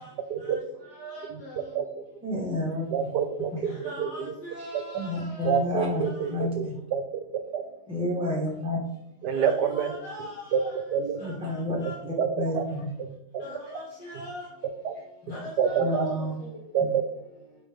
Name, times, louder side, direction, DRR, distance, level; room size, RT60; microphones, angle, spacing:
voice 1, 2.2-3.0 4.9-6.0 6.3-6.7 7.9-8.8 11.2-11.8 12.1-12.9 15.8-16.3 16.8-16.9, left 1 dB, 5° right, -1 dB, 1.1 m, -30 dB
voice 2, 2.9-4.3 4.7-4.8 5.4-7.0 7.5-7.6 9.2-9.9 10.5-10.6 10.9-11.4 12.2-12.6 13.0-13.1 14.8-14.9 15.6-16.1 16.7-16.9, right 7 dB, 75° right, 9 dB, 1.2 m, -27 dB
voice 3, 3.8-5.5 9.3-10.7 11.2-11.3 11.8-11.9 13.4-14.5 15.3-16.3, equal, 65° left, -6 dB, 2.4 m, -40 dB
9.1 x 3.8 x 3.5 m, 0.79 s
omnidirectional pair, 1.9 m